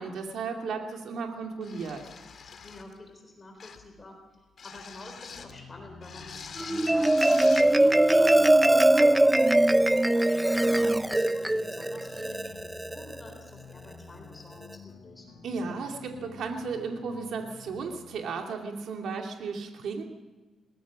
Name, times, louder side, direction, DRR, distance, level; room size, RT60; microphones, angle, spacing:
voice 1, 0.0-2.0 15.4-20.0, right 4 dB, 75° right, 2 dB, 2.7 m, -34 dB
sound 1, 1.6-3.0 3.6-3.9 4.6-5.6 6.0-7.7, left 6 dB, 50° left, 2.2 m, -44 dB
voice 2, 2.6-4.2 4.6-9.2 9.9-15.3, left 2 dB, 25° left, 3 dB, 3.9 m, -48 dB
sound 2, 5.3-18.2, left 5 dB, 85° left, 4.9 m, -50 dB
Marimba xylophone, 6.6-13.2, right 1 dB, 10° right, 0.6 m, -21 dB
22.0 x 19.5 x 6.2 m, 1.2 s
cardioid pair, 125°, 0 cm